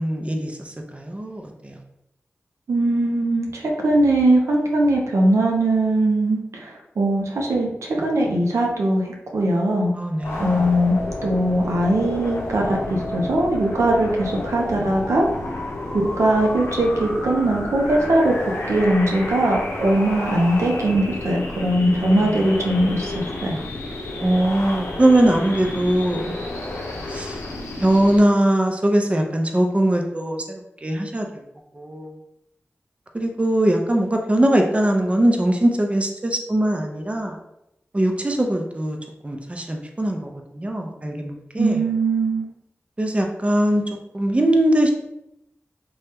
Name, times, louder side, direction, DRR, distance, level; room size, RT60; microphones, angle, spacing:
voice 1, 0.0-1.8 9.9-10.7 22.1-22.4 24.2-26.4 27.1-27.4 27.8-31.3 31.8-32.1 33.1-37.4 37.9-39.0 39.2-41.8 43.0-43.8 44.1-44.9, right 1 dB, 25° right, 2 dB, 0.5 m, -21 dB
voice 2, 2.7-7.7 8.0-9.9 10.4-15.3 16.2-18.4 18.7-23.6 41.6-42.5, right 1 dB, 90° right, 0 dB, 0.5 m, -20 dB
sound 1, 10.2-28.2, left 2 dB, 85° left, 0.5 m, -31 dB
2.8 x 2.2 x 3.3 m, 0.83 s
cardioid pair, 40°, 5 cm